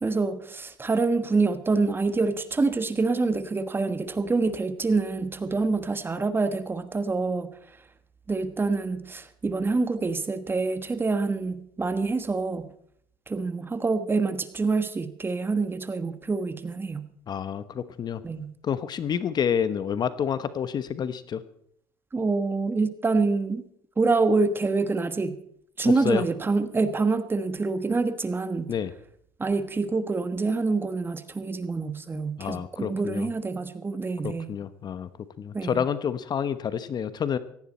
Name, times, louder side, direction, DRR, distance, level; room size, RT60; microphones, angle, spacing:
voice 1, 0.0-7.5 8.3-12.7 13.3-17.1 18.2-18.5 22.1-23.6 24.0-25.4 25.8-28.7 29.4-34.6 35.5-35.8, right 3 dB, 20° right, 11 dB, 1.4 m, -26 dB
voice 2, 17.3-18.2 18.6-21.4 26.0-26.2 28.7-28.9 32.4-33.3 34.2-35.1 35.4-37.4, left 8 dB, 45° left, 14 dB, 1.0 m, -28 dB
17.5 x 15.0 x 4.3 m, 0.67 s
supercardioid pair, 90°, 10 cm